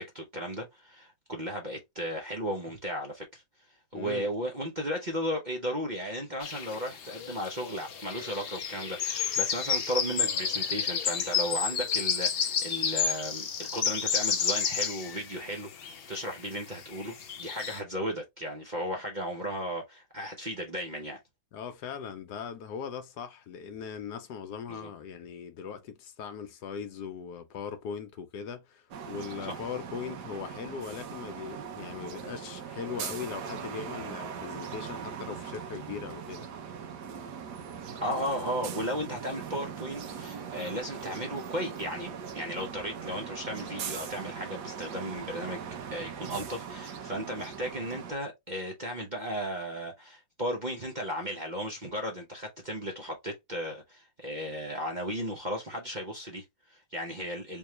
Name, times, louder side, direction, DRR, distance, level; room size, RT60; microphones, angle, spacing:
voice 1, 0.0-3.4 3.9-21.2 24.7-24.9 29.5-29.6 38.0-57.6, equal, 40° right, 0.7 m, -35 dB
voice 2, 3.9-4.3 21.5-36.5, left 7 dB, 75° left, 1.3 m, -40 dB
sound 1, 6.4-16.4 16.7-17.8, left 7 dB, 55° left, 0.6 m, -31 dB
sound 2, 28.9-48.1, right 7 dB, 80° right, 1.4 m, -40 dB
3.6 x 3.1 x 3.1 m
omnidirectional pair, 1.8 m